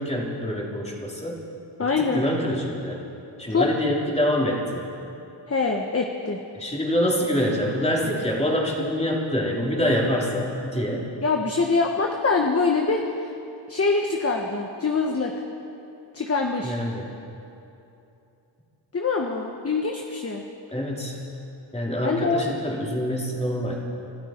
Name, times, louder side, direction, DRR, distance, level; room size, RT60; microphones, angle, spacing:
voice 1, 0.0-1.4 1.8-3.0 3.4-4.9 6.5-11.1 16.6-17.0 20.7-21.2 21.7-23.8, equal, 15° left, -3 dB, 3.3 m, -25 dB
voice 2, 1.8-2.2 3.5-3.7 5.5-6.4 11.2-13.3 13.7-15.3 16.1-16.8 18.9-20.4 22.0-22.5, left 4 dB, 30° left, 2 dB, 1.1 m, -24 dB
26.0 x 12.5 x 4.4 m, 2.8 s
cardioid pair, 75°, 46 cm